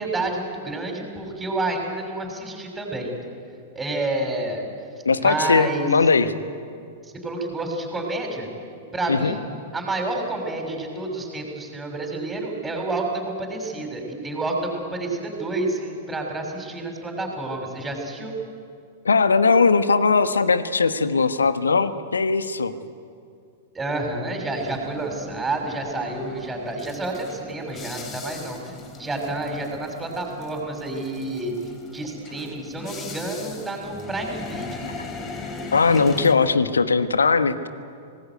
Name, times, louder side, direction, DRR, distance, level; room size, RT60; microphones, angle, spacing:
voice 1, 0.0-3.1 3.7-4.6 5.2-5.9 7.0-8.5 8.9-9.4 9.7-18.4 23.7-31.5 31.9-34.9, right 2 dB, 10° right, 2 dB, 6.4 m, -29 dB
voice 2, 5.0-6.3 9.1-9.4 19.0-22.7 35.7-37.7, left 4 dB, 75° left, 12 dB, 1.3 m, -19 dB
sound 1, 24.5-36.3, left 3 dB, 25° left, 3.1 m, -39 dB
25.0 x 19.5 x 9.5 m, 2.4 s
figure-of-eight pair, 100°, 0 cm